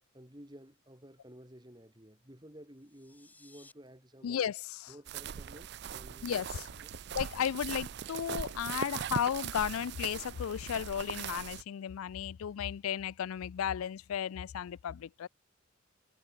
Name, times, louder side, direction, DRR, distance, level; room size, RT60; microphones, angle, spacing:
voice 1, 0.1-4.4 4.9-6.3 6.8-7.0, equal, 20° right, 2.9 m, -53 dB
sound 1, 2.7-3.7, left 2 dB, 10° left, 5.8 m, -60 dB
voice 2, 4.2-4.9 6.2-6.7 7.1-15.3, left 8 dB, 85° left, 0.4 m, -34 dB
sound 2, 5.1-11.6, right 8 dB, 50° right, 0.4 m, -40 dB
head